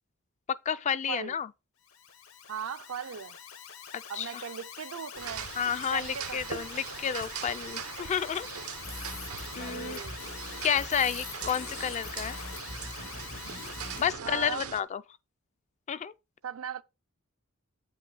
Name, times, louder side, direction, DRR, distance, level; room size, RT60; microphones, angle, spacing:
voice 1, 0.5-1.5 3.9-4.4 5.5-8.5 9.6-10.0 10.6-12.4 14.0-15.0 15.9-16.1, left 8 dB, 30° left, 0.3 m, -31 dB
Alarm, 1.8-14.2, left 8 dB, 70° left, 1.0 m, -45 dB
voice 2, 2.5-3.4 4.1-5.5 5.9-6.6 9.6-10.2 14.2-14.7 16.4-16.8, right 7 dB, 75° right, 0.5 m, -38 dB
sound 1, 5.1-14.8, right 7 dB, 90° right, 0.8 m, -41 dB
sound 2, 8.8-14.1, left 3 dB, 85° left, 2.1 m, -43 dB
8.4 x 5.4 x 3.9 m
head